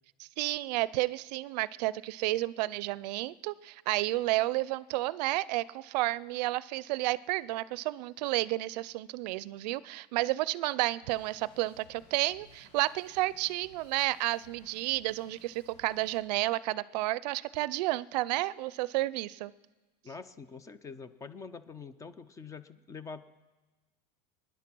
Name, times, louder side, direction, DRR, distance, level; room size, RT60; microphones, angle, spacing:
voice 1, 0.2-19.5, right 18 dB, 75° right, 20 dB, 0.5 m, -31 dB
Drum kit, 11.0-16.2, left 2 dB, 65° left, 6.1 m, -60 dB
voice 2, 20.0-23.2, left 5 dB, 15° left, 14 dB, 0.4 m, -45 dB
23.0 x 10.5 x 6.1 m, 1.2 s
supercardioid pair, 155°, 21 cm